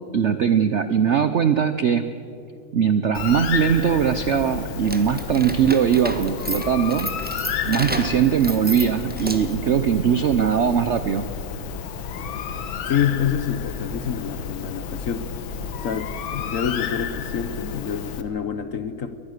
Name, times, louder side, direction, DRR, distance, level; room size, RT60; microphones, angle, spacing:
voice 1, 0.1-2.0 2.7-7.1 7.6-11.3, right 8 dB, 70° right, 10 dB, 0.6 m, -20 dB
Bird, 3.1-18.2, left 7 dB, 85° left, 1.9 m, -31 dB
sound 1, 4.8-9.7, right 1 dB, 5° right, 0.9 m, -32 dB
voice 2, 12.9-15.3 15.8-19.2, left 8 dB, 55° left, 10 dB, 1.0 m, -27 dB
23.0 x 19.5 x 6.6 m, 2.7 s
omnidirectional pair, 2.1 m